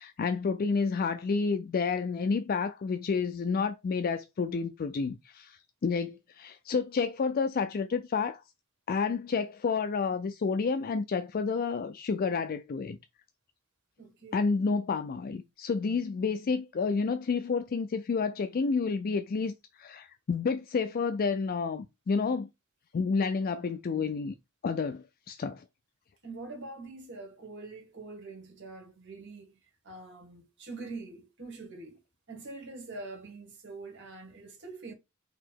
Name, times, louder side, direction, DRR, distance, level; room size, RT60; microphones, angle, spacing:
voice 1, 0.0-8.4 8.9-13.0 14.3-22.5 22.9-24.3 24.6-25.6, left 5 dB, 45° left, 0.4 m, -30 dB
voice 2, 14.0-14.4 26.2-29.5 29.8-32.0 32.3-34.9, right 3 dB, 60° right, 1.7 m, -44 dB
4.2 x 2.8 x 4.5 m
head